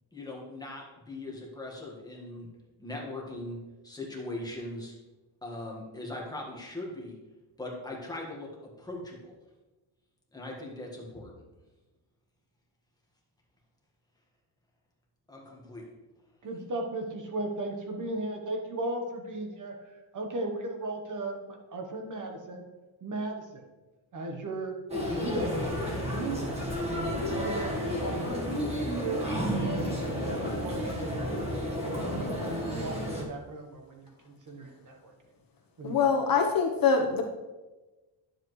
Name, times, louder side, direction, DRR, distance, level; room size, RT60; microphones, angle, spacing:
voice 1, 0.1-2.5 2.8-4.9 5.4-7.2 7.6-9.3 10.3-11.3 15.3-15.9, left 2 dB, 10° left, -2 dB, 1.5 m, -40 dB
voice 2, 16.4-22.7 23.0-23.7 24.1-24.7 25.1-29.2 29.6-32.0 32.4-35.1 35.8-36.1, right 2 dB, 40° right, 2 dB, 1.1 m, -37 dB
sound 1, 24.9-33.2, equal, 15° right, 1.4 m, -31 dB
voice 3, 35.8-37.2, left 5 dB, 50° left, 3 dB, 1.0 m, -24 dB
10.5 x 7.3 x 3.1 m, 1.2 s
wide cardioid pair, 160°, 46 cm